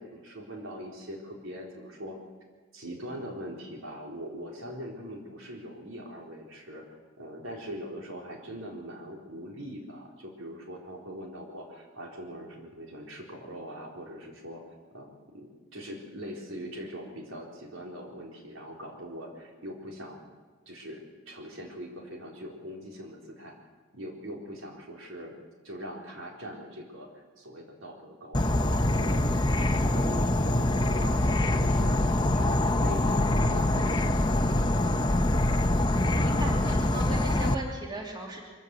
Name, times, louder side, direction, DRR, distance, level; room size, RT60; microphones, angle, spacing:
voice 1, 0.0-2.2 2.7-14.6 14.9-20.3 20.7-23.6 23.9-25.4 25.6-34.7, equal, 75° right, 0 dB, 4.2 m, -42 dB
Insect / Frog, 28.3-37.5, left 1 dB, 20° left, 0.9 m, -24 dB
voice 2, 36.1-38.5, right 1 dB, 20° right, -1 dB, 2.9 m, -37 dB
23.0 x 15.5 x 7.9 m, 1.4 s
head